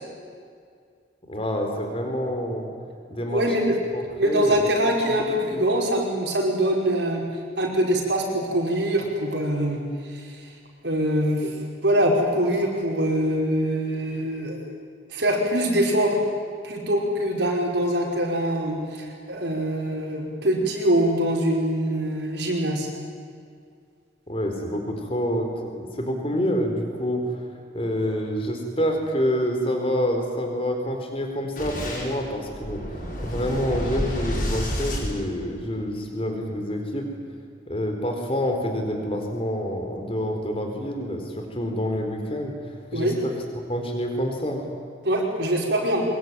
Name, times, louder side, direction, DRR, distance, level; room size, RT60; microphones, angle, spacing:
voice 1, 1.3-2.7 3.1-3.4 3.9-5.1 5.5-5.6 24.3-27.4 27.7-32.8 33.2-37.1 37.7-43.3 43.7-44.7, equal, 30° left, 3 dB, 4.3 m, -27 dB
voice 2, 3.3-3.8 4.2-7.2 7.6-9.8 10.1-10.4 10.8-11.6 11.8-14.7 15.1-16.2 16.6-22.9 42.9-43.2 45.0-46.0, right 1 dB, 70° right, -1 dB, 5.3 m, -23 dB
Boom, 31.6-35.9, equal, 50° left, 7.3 m, -30 dB
23.5 x 22.5 x 9.4 m, 2.2 s
head